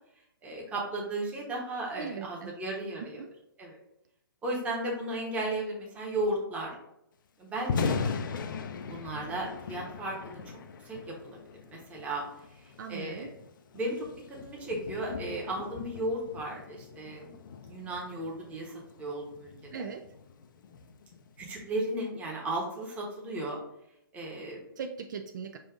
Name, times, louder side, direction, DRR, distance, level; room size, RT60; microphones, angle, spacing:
voice 1, 0.4-3.2 3.6-3.8 4.4-6.8 7.4-8.0 8.8-10.6 10.8-12.2 12.5-13.3 13.7-17.3 17.7-19.8 21.4-23.6 24.1-24.6, right 1 dB, 10° right, -2 dB, 1.0 m, -35 dB
voice 2, 2.0-2.5 3.0-3.3 12.8-13.3 19.7-20.1 24.8-25.6, right 6 dB, 55° right, 6 dB, 0.4 m, -39 dB
Thunder, 7.5-21.7, left 5 dB, 60° left, 0.5 m, -39 dB
5.4 x 2.6 x 3.5 m, 0.81 s
hypercardioid pair, 150°, 12 cm